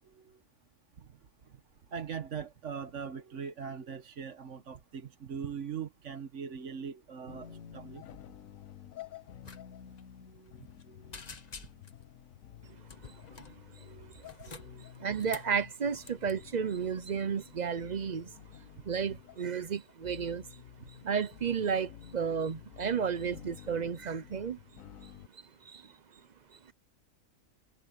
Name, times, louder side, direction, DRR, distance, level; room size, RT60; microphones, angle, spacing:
voice 1, 1.9-8.0 10.3-11.2 13.8-14.1 14.4-14.8, right 7 dB, 65° right, 1.5 m, -41 dB
sound 1, 7.3-25.3, left 10 dB, 85° left, 1.3 m, -51 dB
sound 2, 9.4-9.6 9.9-10.0 10.4-10.8 11.1-12.0 12.9-13.6 14.1-15.6 16.0-16.3, left 4 dB, 35° left, 1.1 m, -48 dB
voice 2, 13.0-13.4 13.7-13.9 14.5-18.3 18.9-20.6 21.0-24.6 25.0-25.9 26.5-26.7, right 6 dB, 45° right, 0.6 m, -33 dB
omnidirectional pair, 1.4 m